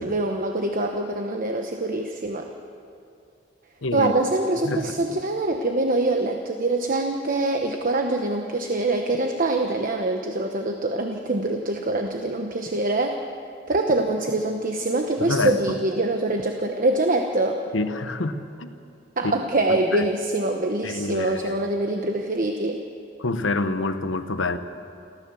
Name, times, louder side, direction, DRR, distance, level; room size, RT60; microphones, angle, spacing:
voice 1, 0.0-2.5 3.9-13.2 13.7-17.6 19.2-22.8, right 2 dB, 45° right, 4 dB, 1.1 m, -24 dB
voice 2, 3.8-4.1 4.6-5.1 15.2-15.7 17.7-18.7 19.2-19.3 19.7-20.0 20.8-21.6 23.2-24.6, left 2 dB, 75° left, 10 dB, 1.1 m, -27 dB
28.5 x 14.0 x 7.0 m, 2.5 s
head